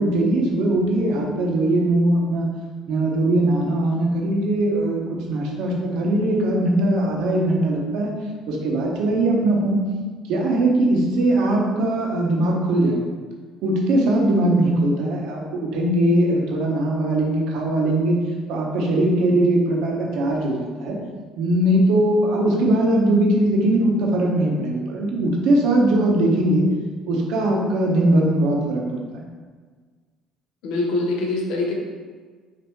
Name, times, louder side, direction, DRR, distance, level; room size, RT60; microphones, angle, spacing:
voice 1, 0.0-2.5 2.9-8.1 8.5-9.8 10.3-13.0 13.6-18.2 18.5-21.0 21.4-26.7 27.1-29.2, right 1 dB, 75° right, -1 dB, 0.9 m, -20 dB
voice 2, 30.6-31.7, left 2 dB, 80° left, -1 dB, 0.9 m, -23 dB
6.6 x 2.6 x 3.1 m, 1.5 s
cardioid pair, 125°, 0 cm